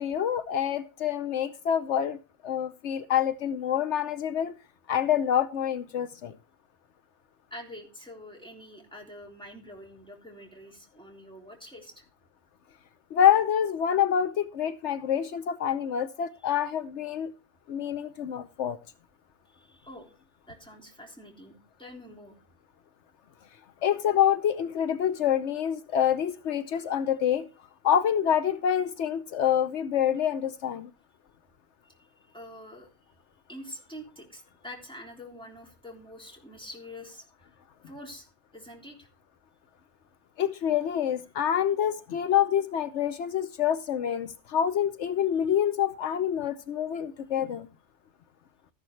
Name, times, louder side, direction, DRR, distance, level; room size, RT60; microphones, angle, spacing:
voice 1, 0.0-2.2 2.4-4.5 4.9-6.4 13.1-17.3 17.7-18.8 23.8-27.5 27.8-30.9 40.4-47.7, left 9 dB, 80° left, 12 dB, 1.0 m, -26 dB
voice 2, 7.5-12.0 16.4-16.5 19.5-20.1 20.5-22.3 31.8-31.9 32.3-32.9 33.5-37.5 37.8-38.3 38.5-39.1, left 1 dB, 5° left, 0 dB, 3.4 m, -46 dB
14.0 x 11.0 x 3.2 m, 0.30 s
omnidirectional pair, 1.2 m